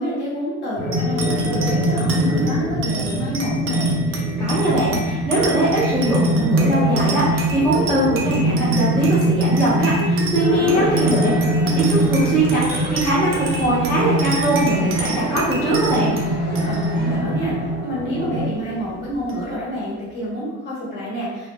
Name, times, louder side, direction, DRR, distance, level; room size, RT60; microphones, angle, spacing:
voice 1, 0.0-3.9 10.4-11.0 11.2-11.6 16.7-17.5 17.8-21.5, equal, 35° left, -8 dB, 1.0 m, -28 dB
sound 1, 0.8-18.4, equal, 75° left, 1.0 m, -22 dB
sound 2, 0.9-19.8, right 4 dB, 45° right, 0.4 m, -30 dB
voice 2, 4.4-11.3 11.6-16.1, right 1 dB, 5° left, -11 dB, 0.5 m, -21 dB
sound 3, 10.7-17.2, left 1 dB, 55° left, 0.6 m, -39 dB
2.4 x 2.0 x 3.2 m, 1.2 s
cardioid pair, 165°, 29 cm